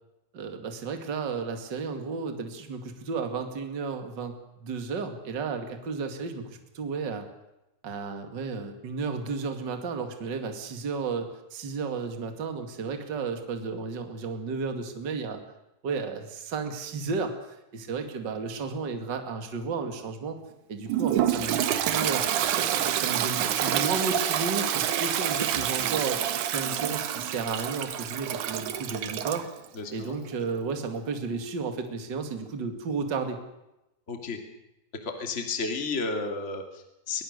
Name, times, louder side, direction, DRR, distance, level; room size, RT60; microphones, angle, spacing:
voice 1, 0.3-4.3 4.6-6.4 6.7-7.3 7.8-15.4 15.8-20.4 20.7-22.2 22.6-29.4 29.9-33.4, right 4 dB, 35° right, 5 dB, 2.5 m, -33 dB
Toilet flush, 20.9-29.5, right 10 dB, 70° right, 2.5 m, -27 dB
voice 2, 29.7-30.2 34.1-34.4 35.0-37.2, left 4 dB, 20° left, 4 dB, 2.5 m, -32 dB
22.5 x 22.0 x 6.7 m, 0.92 s
omnidirectional pair, 4.0 m